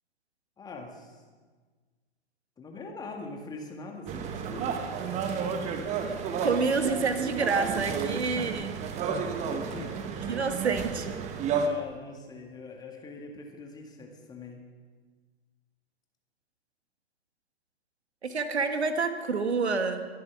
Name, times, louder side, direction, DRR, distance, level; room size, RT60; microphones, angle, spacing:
voice 1, 0.6-1.2 2.6-4.9 5.3-5.9 6.3-6.6 8.4-8.6 9.1-9.2 9.7-10.2 11.6-14.7, left 3 dB, 10° left, 1 dB, 1.9 m, -43 dB
sound 1, 4.1-11.7, right 6 dB, 20° right, 1.1 m, -32 dB
voice 2, 6.4-8.8 10.3-11.1 18.2-20.0, right 4 dB, 75° right, 7 dB, 1.7 m, -28 dB
22.5 x 8.2 x 6.2 m, 1.5 s
figure-of-eight pair, 120°, 33 cm